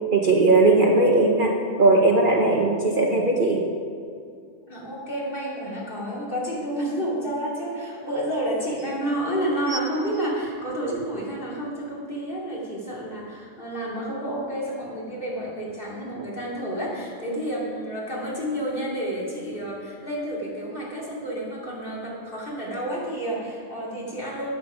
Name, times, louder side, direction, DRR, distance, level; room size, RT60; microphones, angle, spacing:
voice 1, 0.1-3.6 17.3-17.4, right 2 dB, 40° right, 0 dB, 1.0 m, -19 dB
voice 2, 4.7-24.5, right 1 dB, 40° left, -5 dB, 3.0 m, -30 dB
sound 1, 8.0-8.1 8.4-8.9 9.6-11.3 12.0-12.1, right 3 dB, 60° right, 2.0 m, -39 dB
13.5 x 8.7 x 5.0 m, 2.4 s
omnidirectional pair, 1.4 m